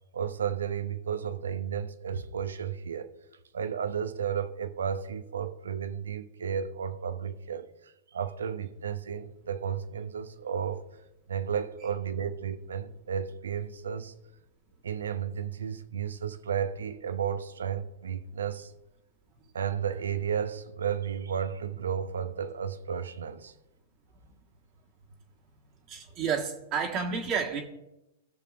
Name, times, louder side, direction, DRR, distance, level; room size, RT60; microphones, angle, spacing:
voice 1, 0.1-3.1 3.5-10.8 11.3-14.1 14.8-18.7 19.5-23.5, right 8 dB, 80° right, 0.7 m, -33 dB
voice 2, 25.9-27.6, right 6 dB, 40° right, 1.5 m, -30 dB
17.0 x 6.7 x 2.5 m
hypercardioid pair, 105°, 0 cm